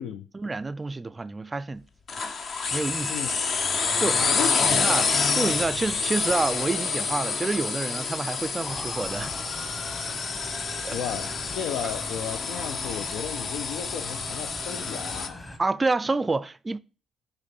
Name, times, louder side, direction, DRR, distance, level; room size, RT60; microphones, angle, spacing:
voice 1, 0.3-1.9 2.7-3.2 4.0-4.2 4.6-5.1 5.3-9.3 10.8-11.0 15.6-16.8, right 3 dB, 25° right, 0.4 m, -28 dB
sound 1, 2.1-15.3, left 5 dB, 55° left, 0.7 m, -28 dB
voice 2, 4.2-5.0 10.9-11.3 11.6-15.5, left 9 dB, 90° left, 0.4 m, -34 dB
Motor vehicle (road) / Siren, 8.6-15.6, left 1 dB, 25° left, 1.2 m, -41 dB
6.6 x 3.0 x 5.2 m
cardioid pair, 90°, 0 cm